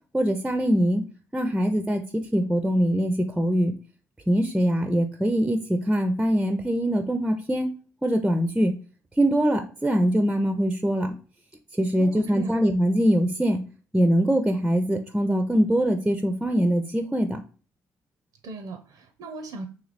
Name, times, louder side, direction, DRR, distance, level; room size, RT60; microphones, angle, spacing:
voice 1, 0.1-1.0 1.3-3.7 4.3-7.7 8.0-8.7 9.2-11.1 11.8-13.6 13.9-17.4, equal, 10° right, 6 dB, 0.5 m, -23 dB
voice 2, 12.0-12.5 18.4-19.7, right 3 dB, 70° right, 6 dB, 0.5 m, -38 dB
3.0 x 2.7 x 4.0 m, 0.38 s
supercardioid pair, 75°, 7 cm